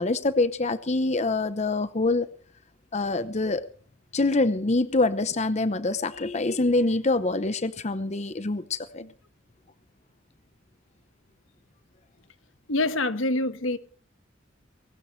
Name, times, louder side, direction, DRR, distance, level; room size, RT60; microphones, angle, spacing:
voice 1, 0.0-2.3 2.9-3.6 4.1-9.0, left 2 dB, 35° left, 0.7 m, -25 dB
voice 2, 12.7-13.8, left 2 dB, 75° left, 1.4 m, -26 dB
20.5 x 18.0 x 3.2 m
head